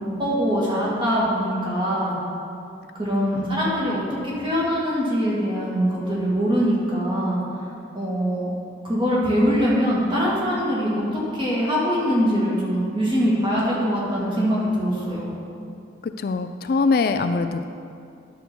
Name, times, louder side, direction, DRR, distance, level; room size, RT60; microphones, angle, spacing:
voice 1, 0.0-2.2 3.0-7.4 7.9-8.5 8.8-11.0 11.3-15.3, equal, 25° right, -6 dB, 2.2 m, -23 dB
voice 2, 16.0-17.7, left 4 dB, 50° left, 9 dB, 0.3 m, -23 dB
10.0 x 6.6 x 4.6 m, 2.4 s
head